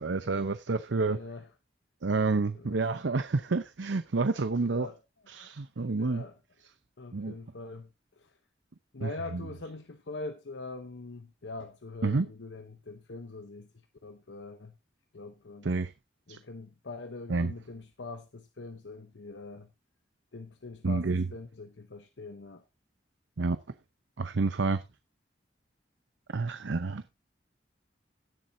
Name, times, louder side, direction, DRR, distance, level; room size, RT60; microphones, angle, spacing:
voice 1, 0.0-1.2 2.0-4.9 5.3-6.2 7.1-7.3 9.0-9.5 12.0-12.3 15.6-15.9 16.3-16.4 17.3-17.5 20.8-21.3 23.4-23.6 24.2-24.8 26.3-27.0, right 3 dB, 85° right, 0.7 m, -29 dB
voice 2, 1.1-1.5 2.5-2.8 4.6-5.0 5.3-5.5 6.0-6.3 7.0-7.9 8.2-8.3 8.9-13.7 14.0-14.7 15.1-15.7 16.3-19.7 20.3-22.6, left 3 dB, 75° left, 0.9 m, -43 dB
17.0 x 7.5 x 2.7 m
head